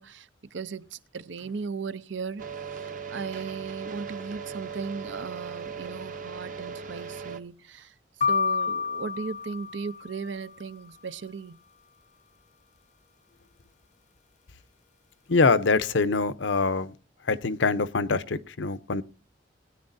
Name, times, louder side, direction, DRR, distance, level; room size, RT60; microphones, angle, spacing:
voice 1, 0.0-2.4 3.1-7.9 8.3-11.6, right 5 dB, 80° right, 0.6 m, -37 dB
sound 1, 2.4-7.4, right 6 dB, 45° right, 0.9 m, -38 dB
sound 2, 8.2-10.3, left 5 dB, 40° left, 0.5 m, -29 dB
voice 2, 15.3-16.9 17.3-19.0, left 4 dB, 80° left, 0.7 m, -24 dB
20.5 x 9.8 x 2.6 m
head